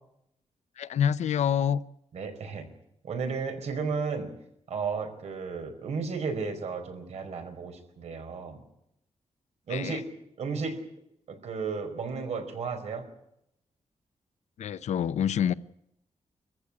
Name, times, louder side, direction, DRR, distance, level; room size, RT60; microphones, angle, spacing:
voice 1, 0.8-1.8 9.7-10.0 14.6-15.5, left 8 dB, 80° left, 15 dB, 0.8 m, -27 dB
voice 2, 2.1-2.7 3.0-4.3 4.7-8.6 9.7-10.0 10.4-10.8 11.3-13.1, right 5 dB, 70° right, 6 dB, 4.7 m, -33 dB
23.5 x 15.5 x 9.9 m, 0.79 s
wide cardioid pair, 175°, 12 cm